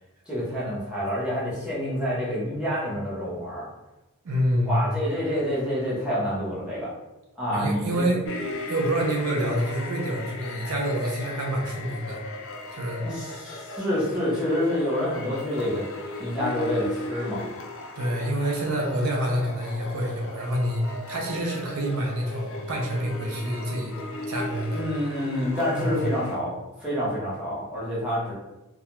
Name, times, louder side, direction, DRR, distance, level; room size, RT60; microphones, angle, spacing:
voice 1, 0.3-3.7 4.6-6.9 7.4-8.2 13.0-15.9 16.2-17.5 24.7-28.3, equal, 5° right, -9 dB, 0.8 m, -28 dB
voice 2, 4.2-5.0 7.5-8.2 8.7-12.2 12.7-13.0 18.0-23.9 24.3-24.8 25.7-26.1, equal, 75° right, -1 dB, 0.5 m, -27 dB
sound 1, 8.2-26.4, left 2 dB, 60° left, 0.4 m, -37 dB
2.3 x 2.2 x 2.9 m, 1.0 s
head